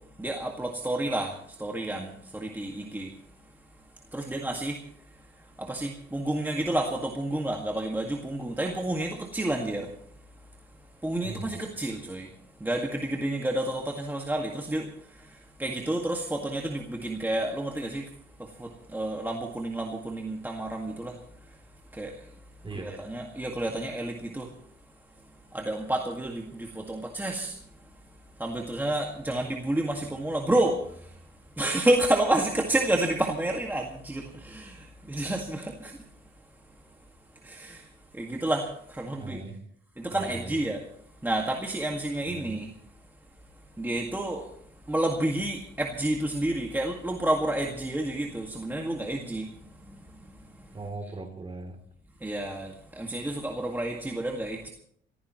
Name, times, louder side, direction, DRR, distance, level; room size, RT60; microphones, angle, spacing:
voice 1, 0.2-3.1 4.1-4.8 5.6-9.9 11.0-12.3 12.6-14.9 15.6-18.0 18.6-21.2 21.9-22.2 22.7-24.5 25.5-27.6 28.4-30.8 31.6-35.9 37.4-37.8 38.1-39.4 40.0-40.8 41.2-42.7 43.8-44.5 44.9-49.5 52.2-54.7, right 1 dB, 10° right, 1.9 m, -30 dB
voice 2, 11.2-11.5 22.6-22.9 39.1-39.6 40.1-40.6 42.3-42.6 50.7-51.8, right 3 dB, 25° right, 3.1 m, -39 dB
27.0 x 15.0 x 3.1 m
cardioid pair, 90°, 20 cm